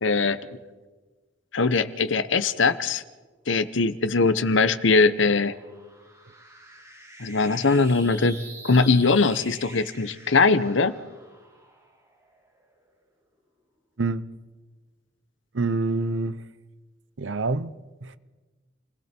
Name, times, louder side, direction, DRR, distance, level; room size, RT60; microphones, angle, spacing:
voice 1, 0.0-0.4 1.5-3.0 3.5-5.5 7.2-8.4 8.6-10.9, left 4 dB, 75° left, 1.0 m, -21 dB
sound 1, 5.1-12.9, right 1 dB, 15° right, 4.7 m, -46 dB
voice 2, 15.5-16.4 17.2-18.2, right 3 dB, 70° right, 0.8 m, -27 dB
29.5 x 19.5 x 4.5 m
head